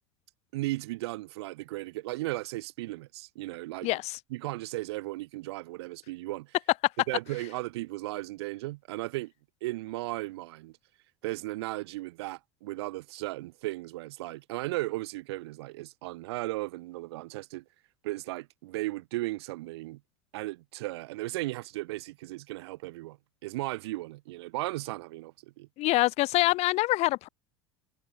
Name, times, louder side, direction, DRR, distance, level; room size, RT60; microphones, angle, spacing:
voice 1, 0.5-4.0 4.3-6.6 7.1-9.3 9.6-10.8 11.2-17.6 18.0-20.0 20.3-23.2 23.4-25.7, right 19 dB, 70° right, 5.3 m, -36 dB
voice 2, 3.8-4.2 25.8-27.3, left 19 dB, 50° left, 0.6 m, -25 dB
hypercardioid pair, 80°, 14 cm